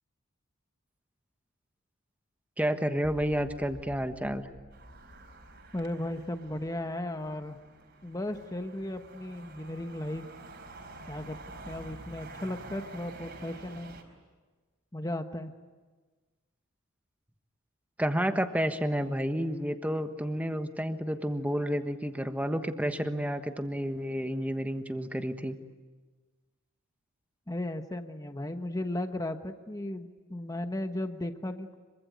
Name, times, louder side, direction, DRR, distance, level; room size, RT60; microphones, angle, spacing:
voice 1, 2.6-4.5 18.0-25.6, equal, 5° right, 7 dB, 1.3 m, -30 dB
sound 1, 3.0-9.1, left 1 dB, 65° left, 6.1 m, -53 dB
sound 2, 4.7-14.0, right 2 dB, 55° right, 4.4 m, -48 dB
voice 2, 5.7-7.6 8.0-10.3 11.1-11.4 11.7-13.9 14.9-15.5 27.5-31.8, left 1 dB, 15° left, 7 dB, 1.1 m, -35 dB
25.5 x 24.0 x 9.5 m, 1.4 s
head